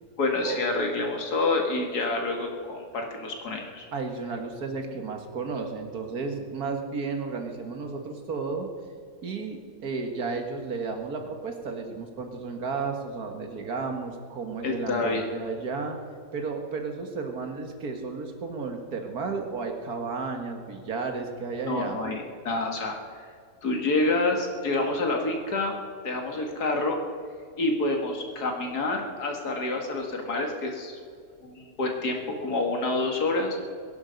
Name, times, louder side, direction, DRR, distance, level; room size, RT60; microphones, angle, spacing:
voice 1, 0.2-3.9 14.6-15.2 21.7-23.0 23.6-25.7 26.0-27.0 27.6-31.0 31.4-33.6, left 2 dB, 85° left, 2 dB, 2.5 m, -28 dB
voice 2, 3.9-8.7 9.2-16.0 16.3-22.0, right 4 dB, 75° right, 4 dB, 2.1 m, -33 dB
22.0 x 11.0 x 5.3 m, 2.2 s
omnidirectional pair, 1.6 m